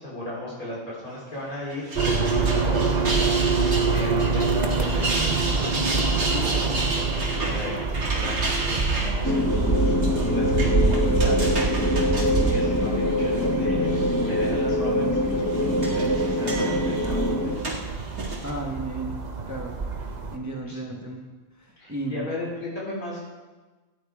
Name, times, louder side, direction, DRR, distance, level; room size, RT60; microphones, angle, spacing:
voice 1, 0.0-3.1 3.9-7.8 8.0-17.6 20.7-21.0 21.8-23.2, left 1 dB, 75° left, -6 dB, 4.6 m, -36 dB
sound 1, 1.7-13.5 13.9-14.5 15.3-18.5, right 2 dB, 75° right, 2.5 m, -32 dB
sound 2, 1.9-20.4, right 4 dB, 35° right, 0.9 m, -26 dB
sound 3, 9.2-17.6, left 1 dB, 15° left, 0.8 m, -24 dB
voice 2, 18.4-19.2 19.5-19.8 20.3-21.2 21.9-22.4, right 2 dB, 10° right, 1 dB, 1.3 m, -33 dB
14.5 x 9.2 x 4.9 m, 1.3 s
omnidirectional pair, 1.5 m